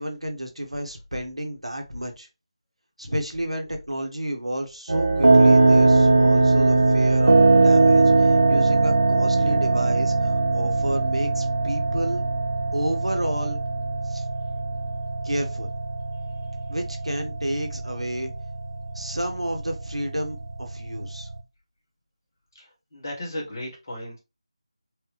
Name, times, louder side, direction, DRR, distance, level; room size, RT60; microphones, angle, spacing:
voice 1, 0.0-2.3 3.0-12.2 12.7-13.6 14.1-14.2 15.2-15.7 16.7-18.3 18.9-21.3, right 1 dB, 80° right, 4 dB, 1.2 m, -31 dB
sound 1, 4.9-21.4, right 3 dB, 55° right, 0.6 m, -20 dB
voice 2, 22.5-24.2, left 1 dB, 30° left, -2 dB, 1.6 m, -35 dB
4.6 x 2.2 x 3.2 m, 0.26 s
figure-of-eight pair, 160°, 3 cm